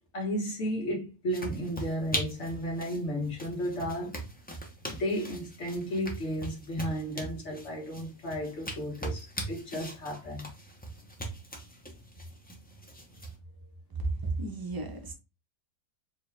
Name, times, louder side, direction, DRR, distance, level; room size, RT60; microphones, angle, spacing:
voice 1, 0.1-4.1 4.9-10.5, equal, 55° left, 1.6 m, -33 dB
sound 1, 1.3-13.3, right 1 dB, 10° left, 0.5 m, -40 dB
voice 2, 14.3-15.1, right 2 dB, 20° right, 0.7 m, -34 dB
4.5 x 2.3 x 3.2 m
omnidirectional pair, 1.4 m